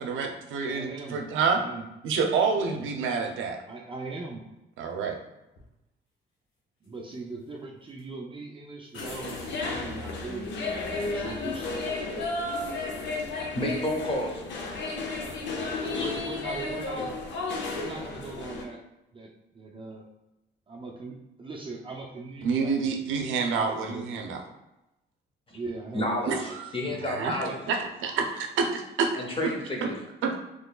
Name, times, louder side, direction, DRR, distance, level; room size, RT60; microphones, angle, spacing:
voice 1, 0.0-1.6 2.0-3.6 4.8-5.2 22.4-24.4 26.3-29.1 29.8-29.9 30.2-30.4, right 5 dB, 80° right, 3 dB, 0.6 m, -28 dB
voice 2, 0.7-1.2 1.5-1.8 3.7-4.4 6.8-11.8 14.8-15.4 15.8-17.1 17.7-18.8 19.1-20.0 20.7-23.2 23.6-24.1 25.5-26.7 27.3-27.6, right 3 dB, 25° right, -1 dB, 0.5 m, -40 dB
sound 1, 5.6-5.7 6.8-7.5 7.9-8.0 8.9-9.6 12.7-13.1, left 2 dB, 90° left, 1.2 m, -46 dB
sound 2, 8.9-18.6, left 3 dB, 65° left, 0.7 m, -33 dB
voice 3, 13.5-14.4 15.9-16.1 25.5-25.6 25.9-27.6 29.2-30.0, left 1 dB, 25° left, 0 dB, 0.9 m, -30 dB
3.7 x 3.1 x 2.3 m, 0.93 s
cardioid pair, 90°, 20 cm